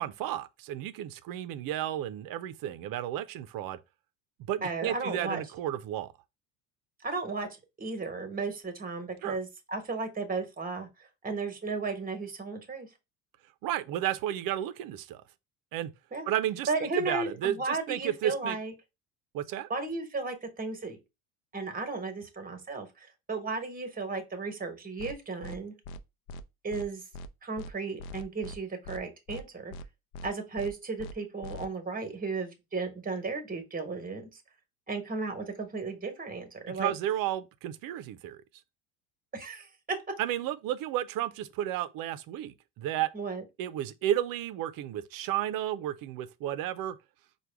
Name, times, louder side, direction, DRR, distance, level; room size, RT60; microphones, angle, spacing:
voice 1, 0.0-3.8 4.5-6.1 9.2-9.4 13.6-15.2 15.7-15.9 16.3-18.6 19.3-19.7 36.7-38.4 40.2-43.1 43.6-47.0, right 12 dB, 55° right, 0.6 m, -32 dB
voice 2, 4.6-5.4 7.0-7.5 7.8-10.9 11.2-12.9 16.1-16.3 16.7-18.7 19.7-21.0 21.5-25.7 26.6-27.0 27.4-29.7 30.2-34.3 34.9-36.9 39.3-40.0 43.1-43.4, right 3 dB, 20° right, 1.2 m, -34 dB
sound 1, 25.0-25.1 25.4-25.6 25.8-26.0 26.3-26.4 26.7-26.9 27.1-27.3 27.6-27.7 28.0-28.6 28.8-29.0 29.3-29.4 29.7-29.9 30.1-30.3 30.6-30.7 31.0-31.1 31.4-31.6, left 1 dB, 65° left, 0.6 m, -42 dB
4.6 x 2.3 x 3.3 m
supercardioid pair, 85°, 41 cm